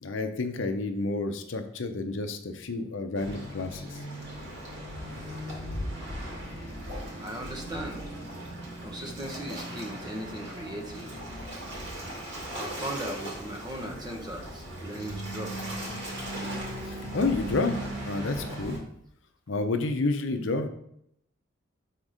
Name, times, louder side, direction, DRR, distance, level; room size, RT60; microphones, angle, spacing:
voice 1, 0.0-3.8 16.9-17.8 18.1-18.8 19.5-20.7, left 3 dB, 65° left, 7 dB, 0.7 m, -29 dB
Waves surf, 3.2-18.8, right 1 dB, 60° right, 2.2 m, -38 dB
voice 2, 7.2-8.0 8.8-11.2 12.4-15.5, right 1 dB, 20° right, 2 dB, 1.0 m, -38 dB
5.8 x 3.6 x 5.0 m, 0.73 s
head